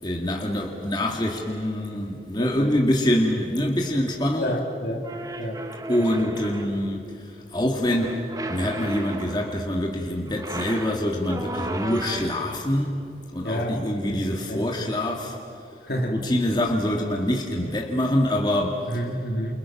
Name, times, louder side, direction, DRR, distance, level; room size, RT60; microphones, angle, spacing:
voice 1, 0.0-4.6 5.9-8.2 8.5-13.0 13.3-15.4 16.1-19.1, left 1 dB, 25° left, 0 dB, 1.9 m, -25 dB
voice 2, 2.4-2.8 4.4-5.0 5.4-5.6 6.0-6.4 13.4-14.9 15.9-16.2 18.9-19.5, equal, 60° left, 1 dB, 2.4 m, -30 dB
sound 1, 5.0-6.9 7.9-9.7 10.3-12.5, right 1 dB, 20° right, 1.2 m, -34 dB
29.5 x 28.5 x 6.0 m, 2.7 s
head